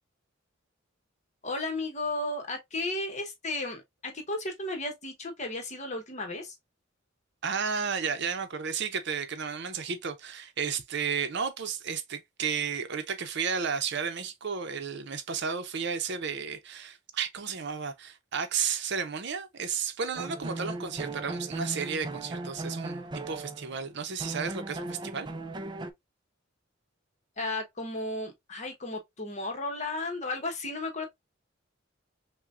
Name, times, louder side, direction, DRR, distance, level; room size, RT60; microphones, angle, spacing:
voice 1, 1.4-6.6 27.4-31.1, left 2 dB, 35° left, 1.1 m, -34 dB
voice 2, 7.4-25.3, right 6 dB, 60° right, 0.7 m, -33 dB
sound 1, 20.1-23.8 24.2-25.9, right 2 dB, 25° right, 0.5 m, -37 dB
5.8 x 2.3 x 2.4 m
head